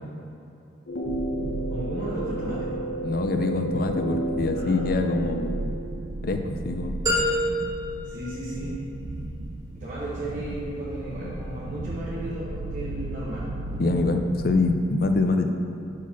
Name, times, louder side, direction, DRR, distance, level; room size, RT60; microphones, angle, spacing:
sound 1, 0.9-5.8, right 2 dB, 80° left, 0.8 m, -31 dB
sound 2, 1.0-14.5, right 2 dB, 80° right, 0.4 m, -35 dB
voice 1, 1.7-2.7 4.5-4.9 8.0-8.8 9.7-13.6, right 1 dB, 40° right, -9 dB, 1.1 m, -34 dB
voice 2, 3.0-5.8 6.2-7.2 13.8-15.5, left 3 dB, 50° left, 6 dB, 0.4 m, -25 dB
sound 3, 7.1-9.1, equal, 20° right, 1.2 m, -27 dB
5.9 x 4.6 x 5.8 m, 2.7 s
head